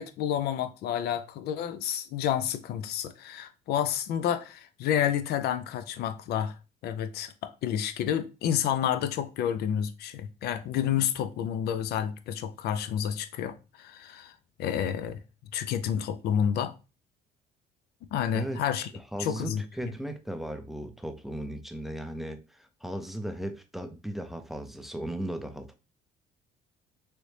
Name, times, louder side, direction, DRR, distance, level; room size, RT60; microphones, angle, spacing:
voice 1, 0.0-6.5 6.8-14.3 14.6-15.2 15.5-16.7 18.1-18.9 19.2-19.6, left 9 dB, 70° left, 0.5 m, -29 dB
voice 2, 18.9-25.7, right 1 dB, ahead, 0.4 m, -36 dB
3.1 x 2.6 x 3.2 m
cardioid pair, 110°, 17 cm